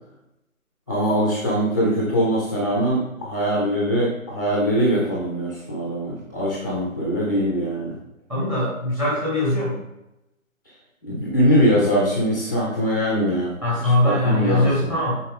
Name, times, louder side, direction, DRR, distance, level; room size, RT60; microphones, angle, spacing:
voice 1, 0.9-8.0 11.0-13.6 13.8-14.9, equal, 15° left, -3 dB, 0.7 m, -22 dB
voice 2, 8.3-9.8 13.6-15.2, left 1 dB, 5° right, -6 dB, 1.2 m, -21 dB
8.5 x 4.6 x 3.5 m, 0.90 s
figure-of-eight pair, 155°, 42 cm